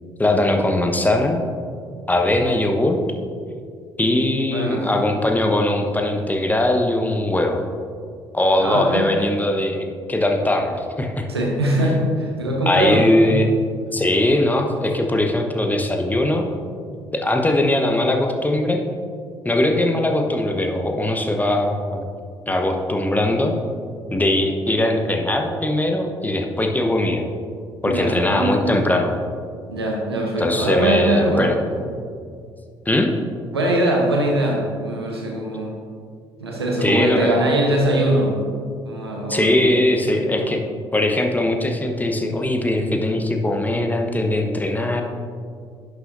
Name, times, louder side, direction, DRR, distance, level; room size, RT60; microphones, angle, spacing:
voice 1, 0.2-1.4 2.1-3.0 4.0-7.6 8.3-11.3 12.7-13.6 13.9-16.5 17.1-18.8 19.4-22.0 22.5-23.5 24.1-27.2 27.8-29.1 30.4-31.5 32.9-33.1 36.8-37.4 39.3-40.6 40.9-45.0, left 1 dB, 15° left, 3 dB, 1.1 m, -20 dB
voice 2, 4.5-4.9 8.6-9.1 11.3-13.5 27.8-28.8 29.7-31.5 31.8-31.9 33.5-35.7 36.4-38.4 38.7-39.5 40.1-40.4, right 1 dB, 85° right, 0 dB, 1.0 m, -22 dB
11.0 x 6.8 x 2.7 m, 2.2 s
figure-of-eight pair, 45°, 13 cm